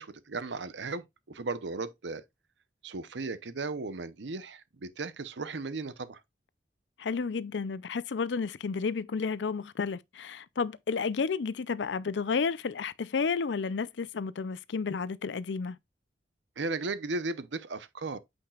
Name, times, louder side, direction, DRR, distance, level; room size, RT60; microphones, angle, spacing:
voice 1, 0.0-2.2 2.8-6.2 16.6-18.2, right 3 dB, 85° right, 0.7 m, -36 dB
voice 2, 7.0-15.8, left 5 dB, 80° left, 0.5 m, -31 dB
8.7 x 5.3 x 2.4 m
head